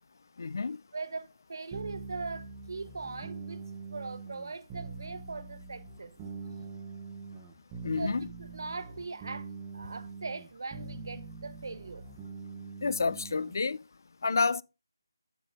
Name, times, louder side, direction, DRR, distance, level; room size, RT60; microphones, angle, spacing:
voice 1, 0.4-0.8 7.8-8.2 12.8-13.8 14.2-14.6, left 4 dB, 55° left, 0.3 m, -29 dB
voice 2, 0.9-6.1 7.9-9.5 9.7-12.0, right 3 dB, 60° right, 1.0 m, -40 dB
sound 1, 1.7-13.6, right 4 dB, 15° right, 0.9 m, -44 dB
9.5 x 5.7 x 3.5 m
figure-of-eight pair, 165°, 2 cm